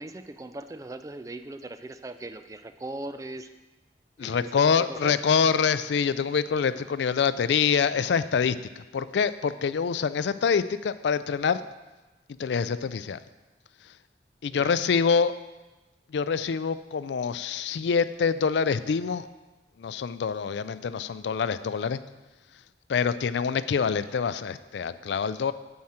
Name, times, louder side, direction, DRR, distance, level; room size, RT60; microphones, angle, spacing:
voice 1, 0.0-3.5 4.2-5.2 14.5-14.8, right 2 dB, 20° right, 10 dB, 0.3 m, -40 dB
voice 2, 4.2-11.6 12.4-13.2 14.4-15.3 16.1-19.3 19.8-22.0 22.9-25.5, left 6 dB, 80° left, 14 dB, 0.4 m, -25 dB
9.4 x 7.7 x 4.3 m, 1.1 s
head